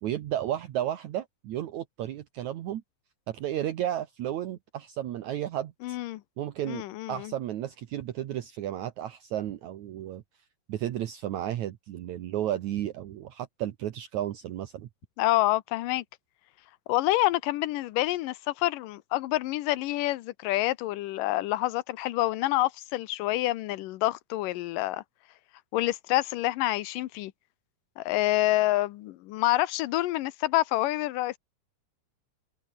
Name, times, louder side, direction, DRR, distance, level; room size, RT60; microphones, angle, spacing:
voice 1, 0.0-2.8 3.3-6.0 6.4-6.8 7.1-10.2 10.7-14.9, right 12 dB, 65° right, 2.3 m, -33 dB
voice 2, 5.8-6.2 6.7-7.3 15.2-16.0 16.9-25.0 25.7-27.3 28.0-31.4, left 16 dB, 80° left, 2.5 m, -27 dB
omnidirectional pair, 3.9 m